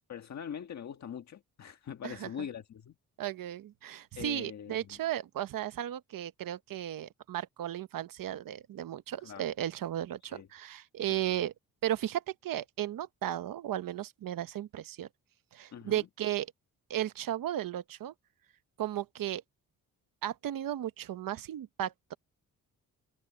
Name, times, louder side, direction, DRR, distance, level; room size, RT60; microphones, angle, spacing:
voice 1, 0.1-3.0 4.2-5.0 9.2-9.5 10.3-10.5 11.1-11.4 15.7-16.1, left 8 dB, 50° left, 1.6 m, -43 dB
voice 2, 3.2-11.5 11.8-15.1 15.5-16.5 16.9-18.1 18.8-19.4 20.2-22.1, right 12 dB, 70° right, 0.9 m, -35 dB
wide cardioid pair, 170°, 35 cm